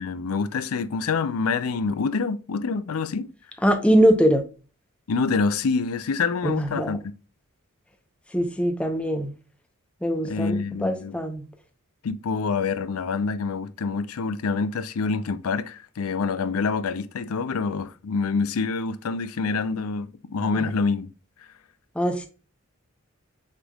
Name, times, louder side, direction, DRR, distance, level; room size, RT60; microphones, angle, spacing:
voice 1, 0.0-3.3 5.1-7.0 10.2-11.2 12.0-21.1, left 4 dB, 85° left, 0.5 m, -26 dB
voice 2, 3.6-4.4 6.4-7.0 8.3-9.3 10.0-11.5 20.5-20.7 22.0-22.3, equal, 5° left, 0.7 m, -22 dB
6.6 x 3.4 x 2.3 m
head